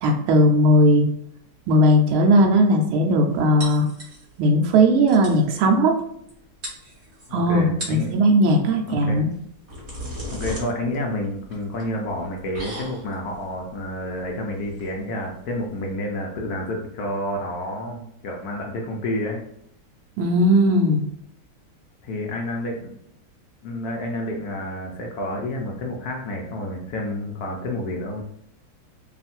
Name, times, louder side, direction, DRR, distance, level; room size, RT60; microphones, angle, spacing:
voice 1, 0.0-1.1 1.7-3.9 4.4-5.9 7.3-9.3 20.2-21.0, equal, 90° right, 3 dB, 1.5 m, -17 dB
sound 1, 3.6-4.5 4.8-4.9 5.1-5.4 6.3-6.4 6.6-7.3 7.7-8.1 9.3-15.9, equal, 35° right, 1.5 m, -37 dB
voice 2, 7.3-8.1 8.9-9.2 10.3-19.4 22.0-22.9 23.6-28.2, left 1 dB, 75° left, -1 dB, 0.9 m, -29 dB
3.4 x 2.4 x 4.1 m, 0.71 s
omnidirectional pair, 2.2 m